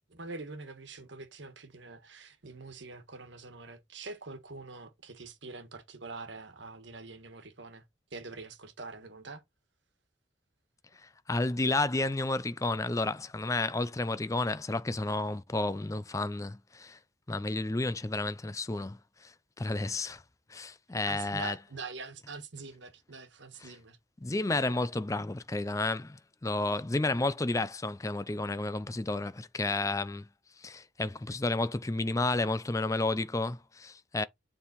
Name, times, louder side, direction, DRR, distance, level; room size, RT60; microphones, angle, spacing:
voice 1, 0.1-7.8 8.1-9.4 21.1-24.0, right 3 dB, 70° right, 1.5 m, -44 dB
voice 2, 11.3-17.0 17.3-20.2 20.5-21.6 23.6-23.7 24.2-30.3 30.6-34.2, left 2 dB, 15° left, 0.4 m, -31 dB
7.0 x 3.7 x 4.1 m
head